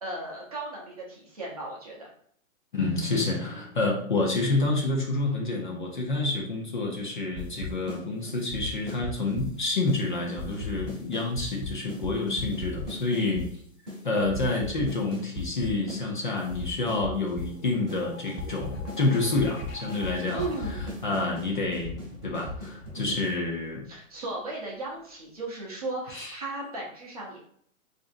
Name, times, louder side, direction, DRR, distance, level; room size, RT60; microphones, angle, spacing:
voice 1, 0.0-2.1 20.3-20.8 23.9-27.4, right 2 dB, 30° right, -3 dB, 0.6 m, -36 dB
voice 2, 2.7-13.5 14.0-22.0 22.2-23.8 26.1-26.4, left 2 dB, 40° left, -1 dB, 0.5 m, -28 dB
sound 1, 7.4-8.0 8.3-9.5 9.9-10.0 10.3-13.5 13.9-14.0 14.2-16.0 16.3-17.5 17.9-18.0 18.3-23.4, left 1 dB, ahead, 0.8 m, -37 dB
sound 2, 16.6-24.2, left 3 dB, 85° left, 0.8 m, -47 dB
4.0 x 2.5 x 2.4 m, 0.64 s
hypercardioid pair, 180°, 40 cm